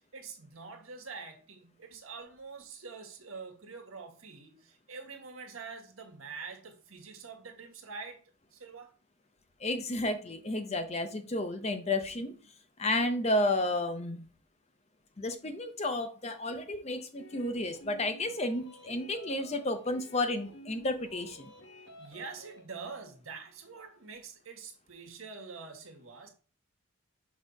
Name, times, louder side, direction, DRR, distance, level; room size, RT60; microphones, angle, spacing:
voice 1, 0.1-8.2 8.5-8.9 22.0-26.3, right 4 dB, 85° right, 1.5 m, -45 dB
voice 2, 9.6-12.4 12.8-14.3 15.2-21.5, left 1 dB, 30° left, 0.7 m, -32 dB
sound 1, 17.2-22.7, equal, 60° left, 1.1 m, -52 dB
6.3 x 3.1 x 5.2 m
head